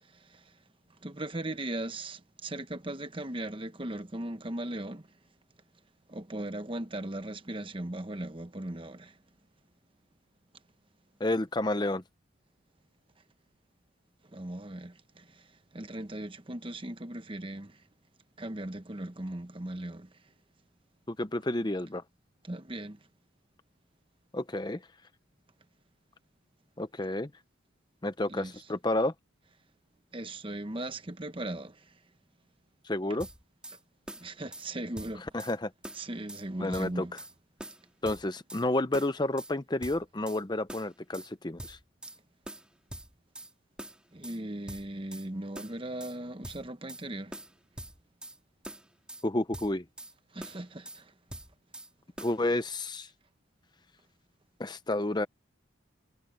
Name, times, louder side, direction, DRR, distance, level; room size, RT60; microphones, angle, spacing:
voice 1, 0.1-0.4 1.0-5.1 6.1-9.2 14.3-15.5 15.7-17.8 18.4-20.1 22.4-23.0 28.3-28.5 30.1-31.9 34.2-35.3 35.9-37.1 44.1-47.3 50.3-51.1, right 1 dB, 25° right, 1.0 m, -38 dB
voice 2, 11.2-12.0 21.1-22.0 24.3-24.8 26.8-27.3 28.0-29.1 32.8-33.3 35.3-35.7 36.6-37.2 38.0-41.8 49.2-49.8 52.2-53.1 54.6-55.3, left 1 dB, 20° left, 0.7 m, -30 dB
sound 1, 33.2-33.8 34.1-34.7 35.0-35.6 35.8-36.5 36.7-37.3 37.6-38.7 38.9-39.5 39.8-40.4 40.7-41.3 41.6-42.2 42.5-43.5 43.8-44.4 44.7-45.3 45.6-46.2 46.4-47.1 47.3-48.4 48.6-49.3 49.5-50.1 50.4-51.0 51.3-51.9 52.2-52.4, right 1 dB, 5° right, 3.9 m, -44 dB
head